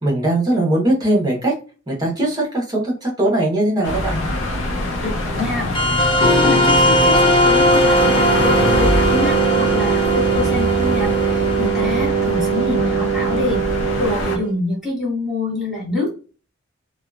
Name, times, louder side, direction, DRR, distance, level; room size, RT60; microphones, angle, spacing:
voice 1, 0.0-1.5 1.9-4.2, right 1 dB, 20° right, -2 dB, 1.0 m, -20 dB
sound 1, 3.8-14.4, left 1 dB, 70° left, 0.6 m, -24 dB
voice 2, 5.0-16.1, left 2 dB, ahead, -7 dB, 1.4 m, -26 dB
sound 2, 5.7-12.8, left 1 dB, 25° left, 0.7 m, -19 dB
Wind instrument woodwind instrument, 8.0-14.6, right 7 dB, 50° right, 0.4 m, -21 dB
2.8 x 2.3 x 2.3 m, 0.35 s
head